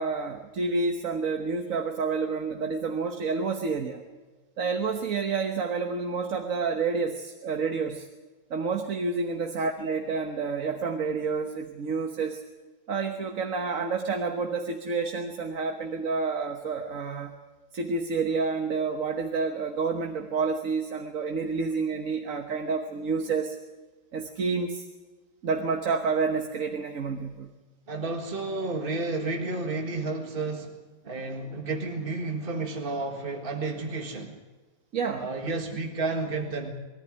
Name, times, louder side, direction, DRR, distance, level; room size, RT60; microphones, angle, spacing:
voice 1, 0.0-4.0 4.6-8.1 8.5-12.4 12.9-17.3 17.7-23.6 24.1-24.9 25.4-27.5 34.9-35.3, right 4 dB, 70° right, 4 dB, 1.7 m, -29 dB
voice 2, 27.9-30.8 31.0-34.4 35.1-36.7, right 3 dB, 40° right, 3 dB, 2.0 m, -31 dB
23.5 x 14.5 x 9.8 m, 1.3 s
omnidirectional pair, 1.5 m